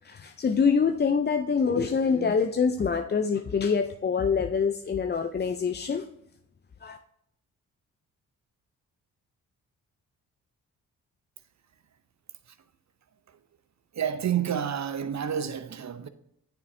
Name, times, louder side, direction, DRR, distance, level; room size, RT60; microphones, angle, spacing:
voice 1, 0.0-6.1 6.8-7.0, left 5 dB, 25° left, 0.5 m, -25 dB
voice 2, 13.9-16.1, right 8 dB, 40° right, 0.8 m, -29 dB
9.2 x 6.6 x 2.7 m
hypercardioid pair, 40°, 41 cm